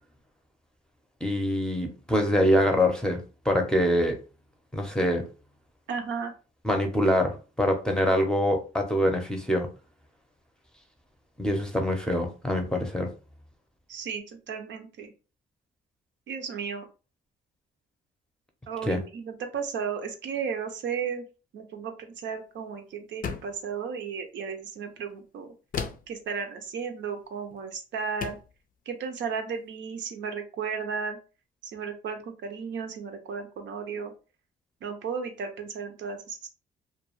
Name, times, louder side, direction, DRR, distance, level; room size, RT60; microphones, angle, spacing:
voice 1, 1.2-4.2 4.7-5.3 6.6-9.7 11.4-13.1 18.8-19.0, equal, 5° left, 2 dB, 0.6 m, -25 dB
voice 2, 5.9-6.3 13.9-15.1 16.3-16.9 18.7-21.3 21.5-25.5 26.1-28.4 28.9-31.2 31.6-34.1 34.8-36.5, right 6 dB, 65° right, 5 dB, 0.6 m, -34 dB
sound 1, 23.2-23.7 25.7-26.2 27.5-27.7 28.2-28.6, left 6 dB, 45° left, 0.4 m, -34 dB
2.3 x 2.2 x 3.0 m, 0.33 s
cardioid pair, 90°, 20 cm